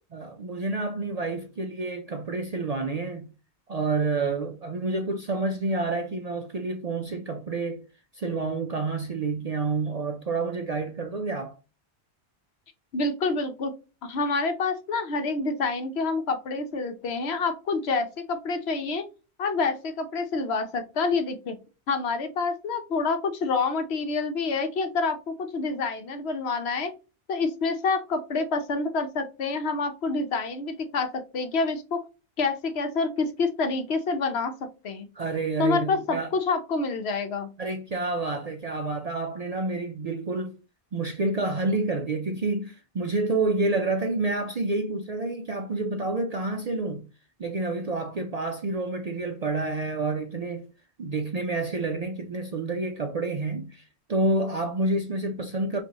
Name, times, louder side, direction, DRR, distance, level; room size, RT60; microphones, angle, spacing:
voice 1, 0.1-3.3 3.7-7.8 8.1-11.6 35.2-36.3 37.6-40.5 40.9-47.0 47.4-50.7 51.0-55.8, right 3 dB, 55° right, 0.4 m, -29 dB
voice 2, 12.9-13.7 14.0-19.0 19.4-21.6 21.9-26.9 27.3-32.0 32.4-34.5 34.8-35.1 35.6-37.5, left 4 dB, 70° left, 1.0 m, -27 dB
5.2 x 2.7 x 2.8 m
omnidirectional pair, 1.1 m